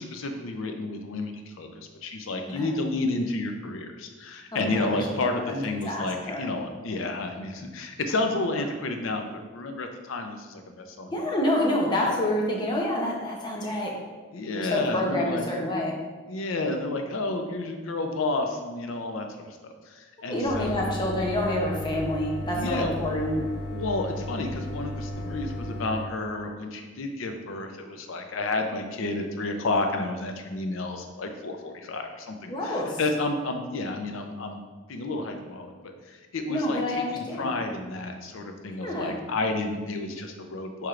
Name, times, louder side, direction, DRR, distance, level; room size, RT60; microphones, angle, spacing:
voice 1, 0.0-1.7 2.0-11.3 12.0-12.1 14.3-15.4 16.3-19.3 19.6-20.9 22.6-22.9 23.7-34.6 34.9-36.8 37.1-40.9, left 2 dB, 80° left, 5 dB, 0.5 m, -31 dB
voice 2, 4.5-5.0 5.5-6.5 11.1-14.0 14.6-16.0 20.3-23.4 32.5-33.0 36.5-37.5 38.7-39.2, left 1 dB, 20° left, -1 dB, 0.7 m, -28 dB
sound 1, 20.4-26.0, left 1 dB, 60° left, 1.4 m, -35 dB
4.7 x 4.4 x 2.4 m, 1.3 s
head